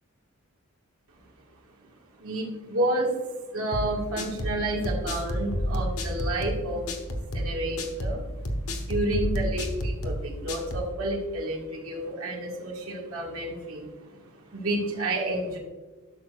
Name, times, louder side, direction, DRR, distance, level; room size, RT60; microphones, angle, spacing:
voice 1, 2.2-3.2 3.5-6.9 7.3-8.2 8.7-15.6, right 1 dB, 85° right, -2 dB, 1.9 m, -30 dB
sound 1, 3.7-10.9, equal, 85° left, 1.2 m, -30 dB
12.0 x 6.4 x 2.5 m, 1.3 s
head